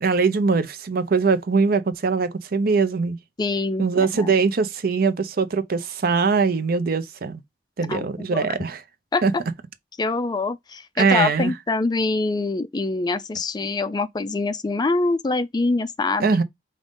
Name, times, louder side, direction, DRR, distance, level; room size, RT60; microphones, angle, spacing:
voice 1, 0.0-3.2 3.8-7.4 7.8-8.8 9.2-9.3 11.0-11.5 16.2-16.4, right 4 dB, 55° right, 0.5 m, -21 dB
voice 2, 3.4-4.3 7.9-8.5 9.1-9.2 10.0-16.4, left 3 dB, 25° left, 0.4 m, -25 dB
5.1 x 2.6 x 3.5 m
head